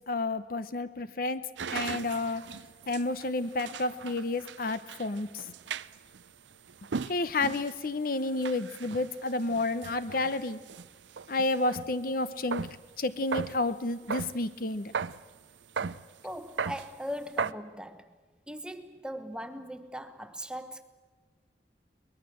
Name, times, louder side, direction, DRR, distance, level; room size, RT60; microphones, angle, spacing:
voice 1, 0.1-1.4 1.7-2.4 2.9-5.3 7.1-10.6 11.3-12.7 13.0-14.9, left 2 dB, 50° left, 0.8 m, -30 dB
sound 1, 1.6-12.0 12.3-12.9 13.2-14.4 14.9-15.2 15.8-16.0 16.3-16.9 17.4-17.5, right 5 dB, 85° right, 0.6 m, -37 dB
voice 2, 16.2-18.1 18.5-20.8, equal, 5° right, 1.0 m, -39 dB
23.5 x 20.0 x 7.7 m
head